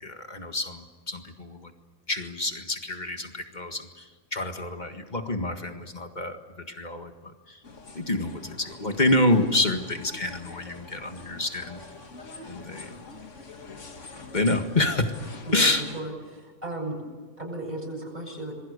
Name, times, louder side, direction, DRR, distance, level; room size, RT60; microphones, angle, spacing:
voice 1, 0.0-1.7 2.1-6.4 6.7-7.6 8.0-11.8 12.5-12.9 14.3-15.1 15.5-15.8, left 2 dB, 35° left, 6 dB, 1.9 m, -27 dB
sound 1, 7.6-16.0, left 3 dB, 65° left, 2.2 m, -45 dB
voice 2, 15.5-17.0 17.4-18.5, right 2 dB, 30° right, -1 dB, 8.0 m, -35 dB
27.0 x 21.5 x 6.8 m, 1.5 s
omnidirectional pair, 1.4 m